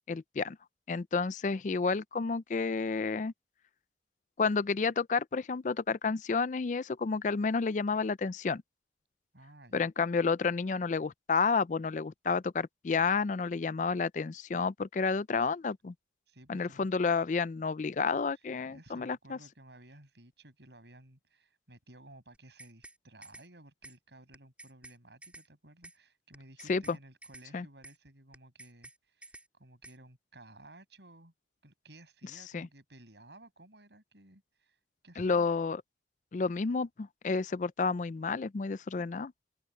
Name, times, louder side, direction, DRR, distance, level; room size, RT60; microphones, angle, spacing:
voice 1, 0.1-0.6 0.9-3.3 4.4-8.6 9.7-15.9 16.5-19.4 26.7-27.0 27.5-27.7 32.5-32.7 35.2-35.8 36.3-39.3, left 4 dB, 45° left, 0.4 m, -30 dB
voice 2, 9.3-9.9 16.3-16.9 18.6-31.3 31.6-34.8 35.0-35.5, right 1 dB, 75° right, 7.2 m, -56 dB
sound 1, 22.3-23.0 23.2-23.5 23.8-24.0 24.3-25.0 25.2-25.5 25.8-26.0 26.3-27.0 27.2-27.5 27.8-28.0 28.3-29.0 29.2-29.5 29.8-30.0, right 2 dB, 10° right, 4.3 m, -51 dB
open air
head